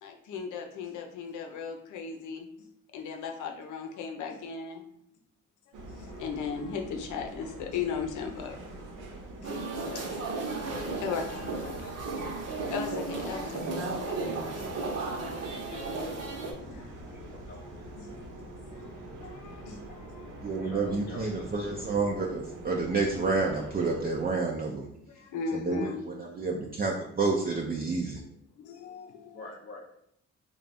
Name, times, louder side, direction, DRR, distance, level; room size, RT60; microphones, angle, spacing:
voice 1, 0.0-2.5 2.9-4.8 6.0-8.6 9.4-9.6 9.9-10.4 10.6-12.0 12.7-13.7 14.1-14.7 15.0-15.1 16.6-16.9 17.3-18.4 18.7-18.9 19.2-20.6 25.1-26.5 28.6-29.6, left 6 dB, 80° left, 3 dB, 0.7 m, -38 dB
sound 1, 5.7-24.3, right 1 dB, 90° right, 0.9 m, -45 dB
sound 2, 9.4-16.5, right 3 dB, 55° right, 0.9 m, -34 dB
voice 2, 15.7-16.6 17.1-17.8 20.6-21.8 29.3-30.0, left 2 dB, 30° left, -4 dB, 0.6 m, -47 dB
voice 3, 20.4-24.9 25.5-28.2, right 3 dB, 30° right, 0 dB, 0.5 m, -29 dB
3.3 x 2.4 x 4.0 m, 0.70 s
cardioid pair, 90°, 30 cm